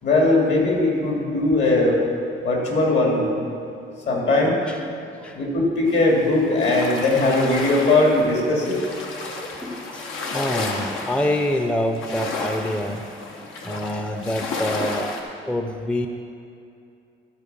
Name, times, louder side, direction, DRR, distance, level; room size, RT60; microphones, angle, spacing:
voice 1, 0.0-2.0 2.4-3.4 4.1-4.6 5.3-8.8, left 2 dB, 65° left, -1 dB, 2.6 m, -19 dB
sound 1, 5.9-15.2, left 3 dB, 85° left, 1.1 m, -32 dB
voice 2, 9.6-10.1 10.3-13.0 13.6-15.1 15.4-16.1, left 1 dB, 5° left, 5 dB, 0.5 m, -26 dB
13.0 x 4.5 x 6.8 m, 2.6 s
cardioid pair, 90°, 20 cm